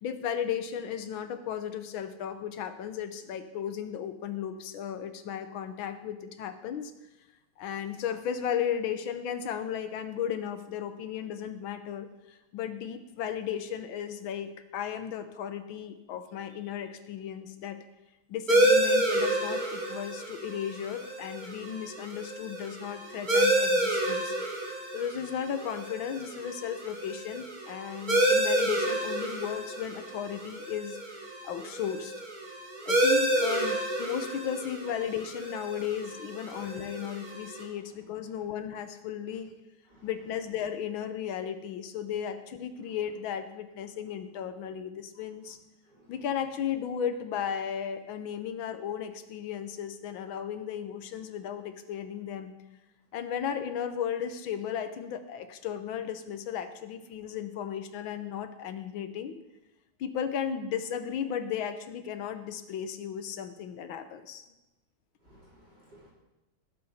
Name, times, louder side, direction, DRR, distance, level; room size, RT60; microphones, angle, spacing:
voice 1, 0.0-6.9 7.6-17.8 18.3-24.3 24.6-31.0 31.4-32.2 32.8-39.5 40.0-45.6 46.1-52.5 53.1-59.4 60.0-64.4, left 8 dB, 75° left, 9 dB, 1.6 m, -35 dB
sound 1, 18.5-37.6, right 1 dB, 25° right, 1.6 m, -29 dB
voice 2, 65.2-66.1, right 1 dB, 50° right, -5 dB, 4.2 m, -57 dB
17.5 x 7.9 x 4.2 m, 0.98 s
omnidirectional pair, 2.3 m